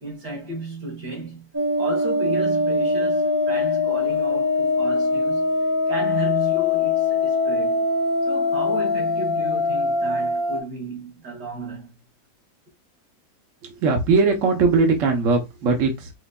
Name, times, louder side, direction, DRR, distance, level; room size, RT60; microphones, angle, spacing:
voice 1, 0.0-1.5 1.8-5.5 5.9-7.9 8.3-11.9, right 2 dB, 70° right, 2.6 m, -33 dB
sound 1, 1.5-10.6, left 3 dB, 20° right, 0.5 m, -22 dB
voice 2, 13.6-16.1, right 4 dB, 55° right, 1.1 m, -20 dB
5.2 x 3.1 x 2.2 m
omnidirectional pair, 1.9 m